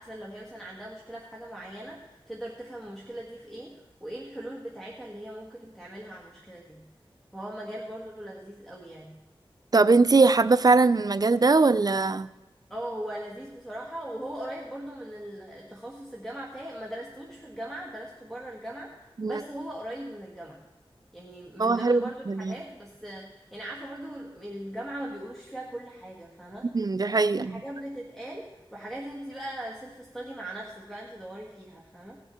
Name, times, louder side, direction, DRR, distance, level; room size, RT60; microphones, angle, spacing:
voice 1, 0.0-6.9 7.3-9.2 12.7-20.6 21.1-26.7 27.3-32.2, right 1 dB, ahead, -4 dB, 1.4 m, -39 dB
voice 2, 9.7-12.3 19.2-19.4 21.6-22.5 26.7-27.6, right 3 dB, 45° right, 15 dB, 0.4 m, -21 dB
17.5 x 6.8 x 4.3 m, 1.0 s
wide cardioid pair, 65°, 9 cm